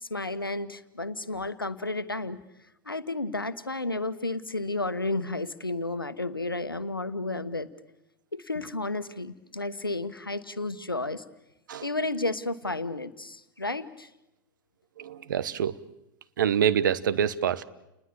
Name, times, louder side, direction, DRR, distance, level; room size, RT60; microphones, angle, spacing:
voice 1, 0.0-2.4 2.8-7.7 8.3-11.2 11.8-14.1, left 2 dB, 85° left, 13 dB, 1.2 m, -32 dB
voice 2, 15.0-15.7 16.4-17.6, right 8 dB, 60° right, 14 dB, 1.1 m, -26 dB
29.5 x 20.5 x 8.7 m, 0.90 s
figure-of-eight pair, 95°, 11 cm